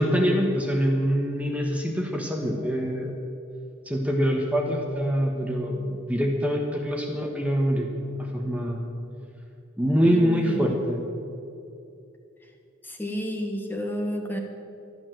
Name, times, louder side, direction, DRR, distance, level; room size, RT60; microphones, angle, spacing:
voice 1, 0.0-3.1 3.8-8.9 9.8-11.0, equal, 5° right, 1 dB, 1.2 m, -25 dB
voice 2, 10.0-10.9 12.8-14.4, equal, 10° left, 2 dB, 1.3 m, -31 dB
12.5 x 12.0 x 7.6 m, 2.7 s
head